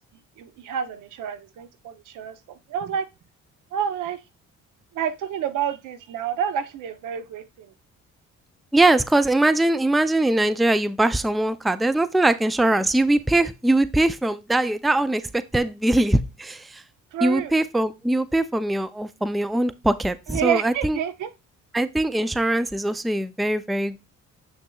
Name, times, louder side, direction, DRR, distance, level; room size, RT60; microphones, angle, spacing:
voice 1, 0.4-3.0 3.7-4.2 4.9-7.7 17.1-17.5 20.3-21.3, right 9 dB, 85° right, 0.8 m, -29 dB
voice 2, 8.7-16.8 17.2-21.0 21.7-24.0, right 1 dB, ahead, 0.4 m, -22 dB
7.2 x 6.2 x 2.3 m
cardioid pair, 90°, 30 cm